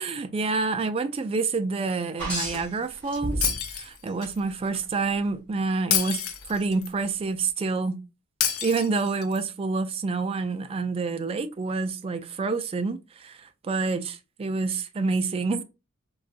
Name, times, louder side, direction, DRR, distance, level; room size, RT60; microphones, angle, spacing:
voice 1, 0.0-6.2 6.5-8.0 8.6-15.6, right 4 dB, 30° right, 0.3 m, -28 dB
sound 1, 2.2-3.8 4.2-4.8 6.4-6.5, right 1 dB, 5° left, 1.5 m, -32 dB
Shatter, 3.4-4.4 5.9-6.9 8.4-9.4, left 9 dB, 85° left, 0.5 m, -28 dB
3.8 x 2.3 x 2.4 m
head